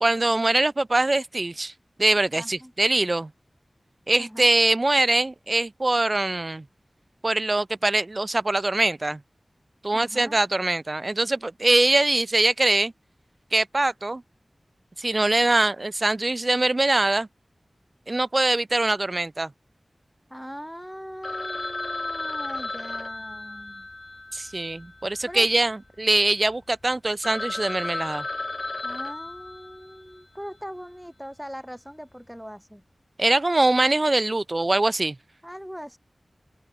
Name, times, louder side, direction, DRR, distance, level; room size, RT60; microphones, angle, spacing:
voice 1, 0.0-1.7 2.0-3.3 4.1-6.6 7.2-9.2 9.8-12.9 13.5-14.2 15.0-17.3 18.1-19.5 24.3-28.3 33.2-35.2, right 2 dB, 40° right, 0.3 m, -23 dB
voice 2, 2.3-2.7 4.2-4.5 9.9-10.4 20.3-23.9 25.2-25.5 28.8-32.8 35.4-36.0, equal, ahead, 1.5 m, -40 dB
Telephone, 21.2-25.6 25.8-25.9 26.5-26.6 26.9-27.0 27.2-30.2, left 2 dB, 45° left, 2.0 m, -34 dB
open air
wide cardioid pair, 55°, 0 cm